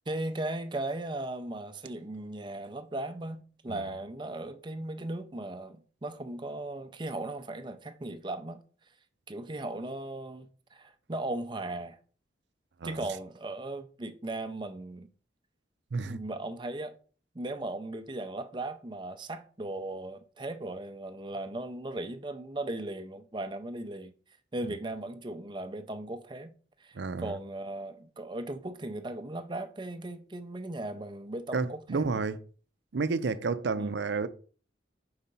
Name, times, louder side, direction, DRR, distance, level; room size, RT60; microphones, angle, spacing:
voice 1, 0.1-8.6 9.3-12.0 12.8-15.1 16.0-17.0 17.3-24.1 24.5-26.5 26.8-32.2 33.8-34.0, right 2 dB, 25° right, 0.5 m, -37 dB
voice 2, 26.9-27.3 31.5-32.4 32.9-34.3, right 4 dB, 75° right, 0.5 m, -31 dB
4.8 x 4.3 x 5.3 m
head